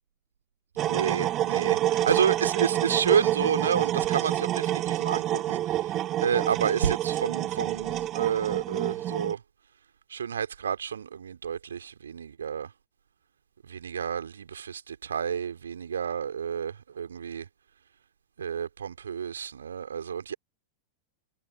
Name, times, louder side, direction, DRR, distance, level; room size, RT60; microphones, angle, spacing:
sound 1, 0.8-9.3, right 13 dB, 30° right, 0.7 m, -28 dB
voice 1, 0.8-9.4 10.1-12.7 13.7-17.5 18.4-20.3, right 7 dB, 70° right, 3.3 m, -30 dB
figure-of-eight pair, 90°, 0 cm